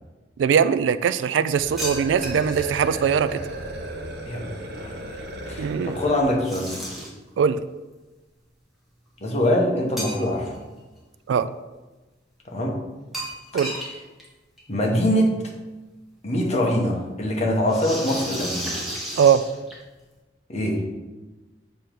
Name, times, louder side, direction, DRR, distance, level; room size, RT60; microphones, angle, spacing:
voice 1, 0.4-3.4 5.6-6.0 7.4-7.6 11.3-11.5 13.5-13.7 19.2-19.4, right 7 dB, 80° right, 13 dB, 0.3 m, -21 dB
sound 1, 1.5-6.5, right 1 dB, 65° right, 0.8 m, -35 dB
sound 2, 1.8-2.8 6.4-7.3 10.0-10.6 10.9-11.0 13.1-13.9 14.2-14.3 14.6-14.7 15.9-16.0 17.7-20.0, right 1 dB, ahead, 1.3 m, -33 dB
voice 2, 4.2-5.2 5.5-6.8 9.2-10.6 12.5-12.8 14.7-15.3 16.2-18.8 20.5-20.8, left 1 dB, 40° left, -1 dB, 1.1 m, -24 dB
6.9 x 3.0 x 5.1 m, 1.2 s
head